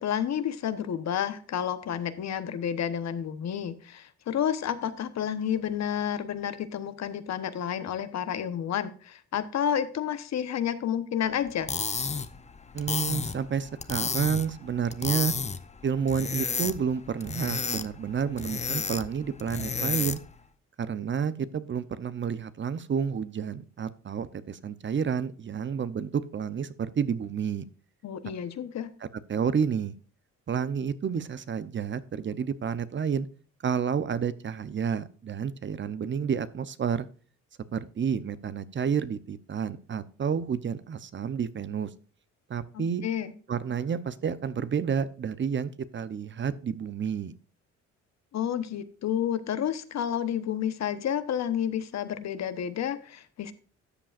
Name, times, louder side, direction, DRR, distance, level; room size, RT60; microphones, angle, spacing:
voice 1, 0.0-11.7 28.0-28.9 42.7-43.3 48.3-53.5, left 9 dB, 60° left, 12 dB, 1.1 m, -30 dB
sound 1, 11.5-20.4, left 5 dB, 20° left, 0.7 m, -32 dB
voice 2, 12.7-15.3 15.8-20.2 20.8-27.6 29.0-29.9 30.5-33.3 33.6-37.1 37.7-41.9 42.5-43.0 43.5-47.3, right 7 dB, 40° right, 15 dB, 0.7 m, -30 dB
13.0 x 7.6 x 2.5 m, 0.41 s
cardioid pair, 90°, 30 cm